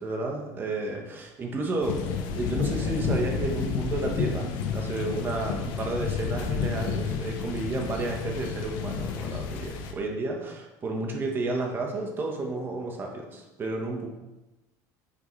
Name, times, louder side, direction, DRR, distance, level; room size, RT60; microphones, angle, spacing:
voice 1, 0.0-14.1, right 2 dB, 30° right, 1 dB, 1.4 m, -32 dB
sound 1, 1.8-9.9, left 6 dB, 75° left, 1.0 m, -30 dB
8.6 x 6.0 x 3.3 m, 1.0 s
cardioid pair, 135°, 8 cm